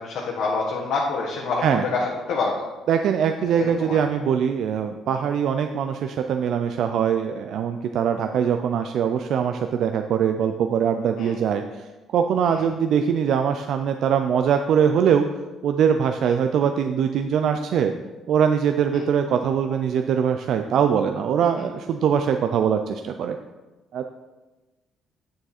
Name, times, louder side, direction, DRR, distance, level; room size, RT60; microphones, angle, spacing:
voice 1, 0.0-2.0 2.3-2.6 3.5-4.0 11.2-11.3 12.5-12.6, left 4 dB, 60° left, -3 dB, 1.5 m, -26 dB
voice 2, 2.9-15.3 15.6-17.9 18.3-23.4 23.9-24.1, right 7 dB, 55° right, 6 dB, 0.4 m, -22 dB
9.1 x 7.1 x 4.3 m, 1.2 s
cardioid pair, 160°, 0 cm